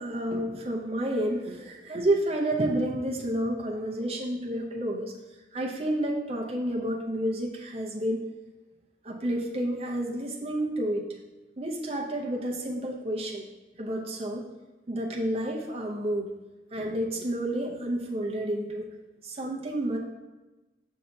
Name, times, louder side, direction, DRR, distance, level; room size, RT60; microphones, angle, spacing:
voice 1, 0.0-5.1 5.5-8.2 9.0-11.0 11.6-13.4 13.8-14.5 14.9-16.3 16.7-18.9 19.2-20.0, right 1 dB, 35° right, 0 dB, 0.6 m, -30 dB
6.4 x 2.8 x 5.6 m, 1.1 s
head